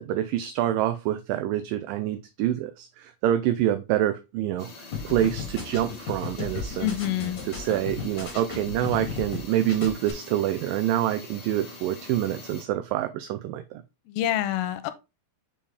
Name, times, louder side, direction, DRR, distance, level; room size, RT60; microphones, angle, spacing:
voice 1, 0.0-4.7 5.0-6.9 7.5-13.8, right 12 dB, 80° right, 2.1 m, -26 dB
sound 1, 4.6-12.6, left 4 dB, 60° left, 1.0 m, -45 dB
sound 2, 4.9-9.4 9.7-10.1, left 6 dB, 35° left, 2.3 m, -34 dB
voice 2, 6.8-7.4 14.1-14.9, left 12 dB, 85° left, 2.5 m, -27 dB
7.0 x 5.0 x 3.3 m
omnidirectional pair, 4.4 m